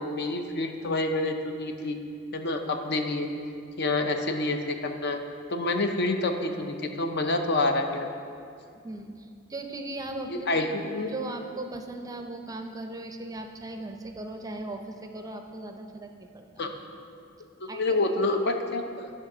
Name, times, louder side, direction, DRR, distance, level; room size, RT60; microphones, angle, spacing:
voice 1, 0.0-2.0 2.3-3.3 3.8-5.2 5.5-8.1 10.3-11.1 16.6-16.8 17.6-19.1, left 2 dB, 60° left, 5 dB, 0.6 m, -28 dB
voice 2, 8.8-10.6 11.1-16.7 17.7-18.0, right 2 dB, 20° right, 4 dB, 0.5 m, -38 dB
11.0 x 3.6 x 6.0 m, 2.4 s
head